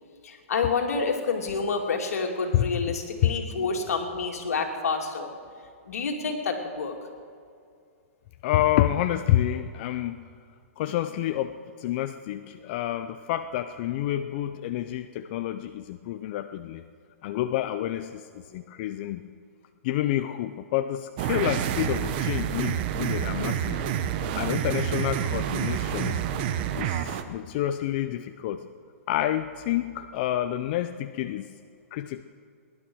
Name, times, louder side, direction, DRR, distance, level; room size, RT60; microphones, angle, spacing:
voice 1, 0.2-5.3 5.9-7.0, left 4 dB, 80° left, 3 dB, 2.6 m, -28 dB
voice 2, 8.4-10.2 10.8-16.8 17.2-19.2 19.8-23.8 24.3-26.2 26.5-28.6 29.1-31.5 31.9-32.2, left 12 dB, 40° left, 9 dB, 0.5 m, -28 dB
sound 1, 21.2-27.2, right 9 dB, 40° right, 0.9 m, -28 dB
18.5 x 11.5 x 6.3 m, 2.3 s
hypercardioid pair, 150°, 8 cm